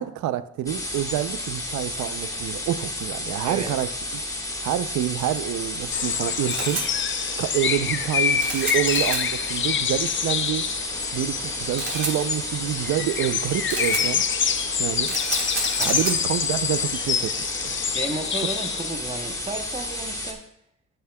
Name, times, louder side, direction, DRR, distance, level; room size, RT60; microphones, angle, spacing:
voice 1, 0.0-3.9 4.6-6.8 7.4-10.6 11.1-14.2 14.8-15.1 15.8-17.3 17.6-17.8, right 12 dB, 70° right, 14 dB, 0.5 m, -27 dB
sound 1, 0.7-20.3, left 1 dB, 10° left, 1.5 m, -32 dB
sound 2, 5.9-18.9, left 8 dB, 40° left, 0.6 m, -27 dB
Camera, 6.1-19.5, right 3 dB, 40° right, 3.4 m, -34 dB
voice 2, 17.9-20.4, right 3 dB, 20° right, 6 dB, 0.8 m, -33 dB
14.5 x 7.3 x 2.2 m, 0.78 s
cardioid pair, 90°, 30 cm